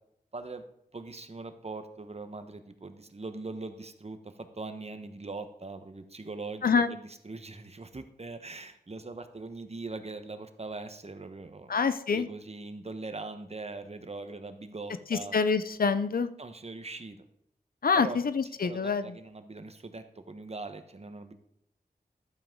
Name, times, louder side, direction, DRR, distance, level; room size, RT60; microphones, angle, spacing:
voice 1, 0.3-0.6 0.9-11.8 12.1-15.4 16.4-17.2 17.9-18.2 18.6-21.3, right 3 dB, 40° right, 9 dB, 1.1 m, -41 dB
voice 2, 11.7-12.3 15.1-16.3 17.8-19.2, left 5 dB, 65° left, 12 dB, 0.6 m, -26 dB
12.0 x 7.6 x 3.7 m, 0.74 s
cardioid pair, 55°, 16 cm